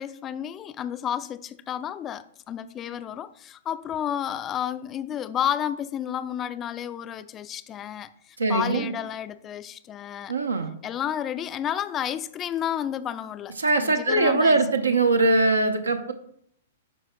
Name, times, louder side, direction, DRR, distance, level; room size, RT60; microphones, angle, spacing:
voice 1, 0.0-8.1 8.5-10.3 10.8-14.6, left 10 dB, 25° left, 14 dB, 0.3 m, -31 dB
voice 2, 8.4-8.9 10.3-10.7 13.6-16.1, right 2 dB, 75° right, 7 dB, 0.6 m, -22 dB
9.2 x 5.6 x 2.2 m, 0.68 s
figure-of-eight pair, 105°, 0 cm